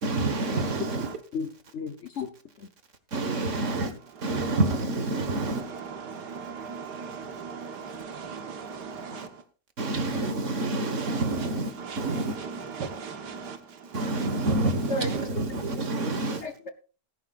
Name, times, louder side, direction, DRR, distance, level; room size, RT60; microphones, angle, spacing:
voice 1, 0.0-1.1 3.1-3.9 4.2-5.6 9.8-12.4 13.9-16.4, right 2 dB, 50° right, 1.8 m, -28 dB
voice 2, 0.5-1.2 3.5-3.8 4.2-4.6 5.1-9.4 9.8-10.3 10.8-15.3, right 5 dB, 80° right, 1.9 m, -39 dB
voice 3, 1.3-2.3 2.6-2.7 9.1-9.2 14.9-15.1 16.1-16.2 16.4-16.7, left 3 dB, 50° left, 1.1 m, -33 dB
17.5 x 11.0 x 2.5 m
omnidirectional pair, 1.8 m